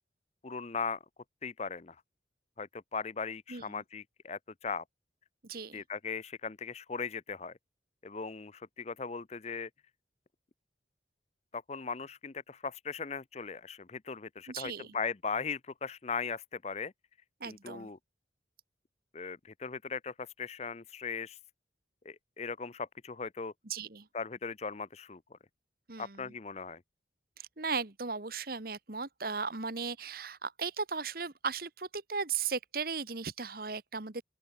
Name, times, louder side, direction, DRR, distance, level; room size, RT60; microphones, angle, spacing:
voice 1, 0.4-1.0 1.4-2.0 2.6-4.8 5.7-7.5 8.0-9.7 11.5-16.9 17.5-18.0 19.1-21.4 22.0-23.5 24.1-25.4 26.0-26.8, left 5 dB, 35° left, 0.6 m, -38 dB
voice 2, 3.5-3.8 5.4-5.8 14.5-15.0 17.4-17.9 23.6-24.1 25.9-26.3 27.4-34.2, right 5 dB, 50° right, 1.5 m, -37 dB
open air
head